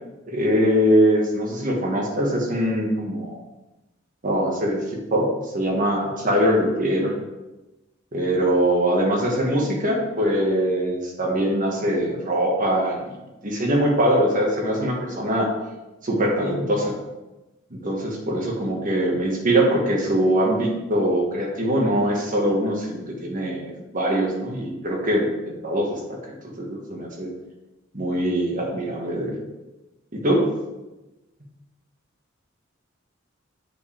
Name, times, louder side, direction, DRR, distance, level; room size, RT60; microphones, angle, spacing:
voice 1, 0.3-3.4 4.2-7.1 8.1-13.1 13.4-15.5 16.0-16.9 17.8-27.3 27.9-29.3 30.1-30.5, equal, 40° right, -1 dB, 1.5 m, -22 dB
7.8 x 5.7 x 3.4 m, 1.0 s
head